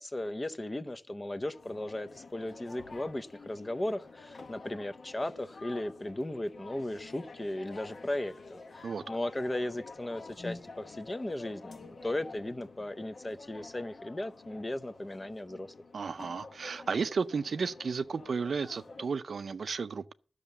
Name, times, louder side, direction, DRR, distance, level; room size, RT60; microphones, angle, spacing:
voice 1, 0.0-15.7, left 1 dB, 20° left, 0.6 m, -36 dB
sound 1, 1.5-19.1, left 3 dB, 55° left, 1.0 m, -49 dB
voice 2, 15.9-20.1, right 5 dB, 60° right, 0.5 m, -33 dB
12.0 x 6.5 x 6.9 m
wide cardioid pair, 130°, 0 cm